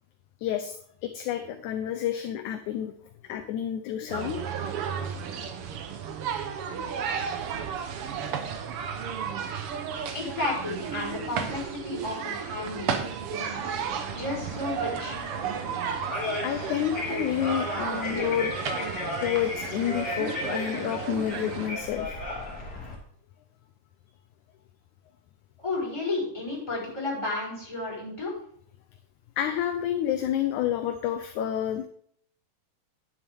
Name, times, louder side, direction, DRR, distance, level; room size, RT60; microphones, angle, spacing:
voice 1, 0.4-0.8 1.0-2.9 3.3-4.4 4.8-5.1 16.4-18.5 19.2-22.2 29.4-31.9, left 10 dB, 75° left, 8 dB, 1.9 m, -29 dB
sound 1, 4.1-21.7, right 7 dB, 75° right, 1.3 m, -33 dB
voice 2, 10.1-13.8 14.1-15.2 25.6-28.3, left 2 dB, 10° left, -6 dB, 4.3 m, -33 dB
sound 2, 13.5-22.9, left 2 dB, 30° left, 2.6 m, -35 dB
10.0 x 8.8 x 3.6 m, 0.64 s
omnidirectional pair, 3.9 m